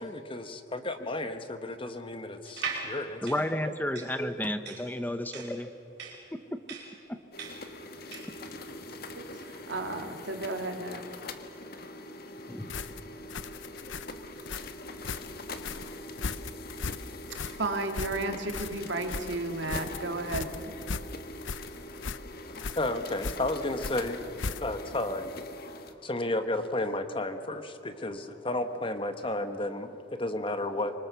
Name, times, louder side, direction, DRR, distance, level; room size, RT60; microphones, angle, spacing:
voice 1, 0.0-3.2 22.5-24.2 24.6-25.3 26.0-30.9, left 2 dB, 25° left, 8 dB, 1.3 m, -32 dB
sound 1, 2.4-8.4, right 5 dB, 60° right, 5.6 m, -40 dB
voice 2, 3.2-5.7 7.1-7.2 12.5-13.0, left 1 dB, 10° left, 9 dB, 0.8 m, -32 dB
sound 2, 7.3-25.9, left 1 dB, 50° left, 1.6 m, -43 dB
voice 3, 9.1-11.0 17.3-20.5, right 2 dB, 75° right, 4 dB, 2.4 m, -33 dB
sound 3, 12.7-24.9, left 4 dB, 80° left, 0.8 m, -38 dB
26.0 x 24.5 x 6.9 m, 2.7 s
head